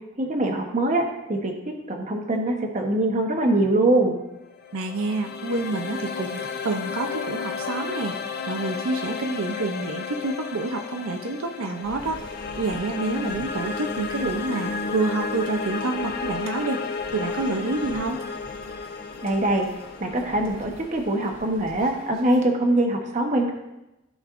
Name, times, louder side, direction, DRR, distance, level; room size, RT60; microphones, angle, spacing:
voice 1, 0.2-4.2 19.2-19.7 20.0-23.5, right 1 dB, 35° right, 2 dB, 1.0 m, -23 dB
sound 1, 4.5-21.6, left 5 dB, 45° left, 0.5 m, -33 dB
voice 2, 4.7-8.2 8.5-12.2 12.6-16.8 17.1-18.2, right 2 dB, 75° right, 3 dB, 0.6 m, -28 dB
sound 2, 11.8-22.4, equal, 25° left, 2.6 m, -45 dB
14.5 x 5.2 x 2.5 m, 0.96 s
head